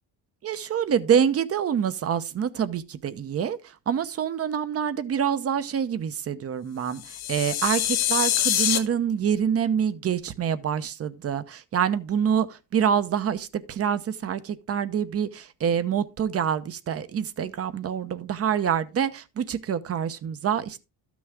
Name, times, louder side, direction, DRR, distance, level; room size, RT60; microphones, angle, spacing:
voice 1, 0.4-3.6 3.9-7.0 7.3-12.5 12.7-20.8, right 8 dB, 40° right, 0.9 m, -26 dB
sound 1, 7.0-8.8, left 11 dB, 85° left, 1.8 m, -24 dB
12.5 x 6.3 x 3.5 m
cardioid pair, 115°, 38 cm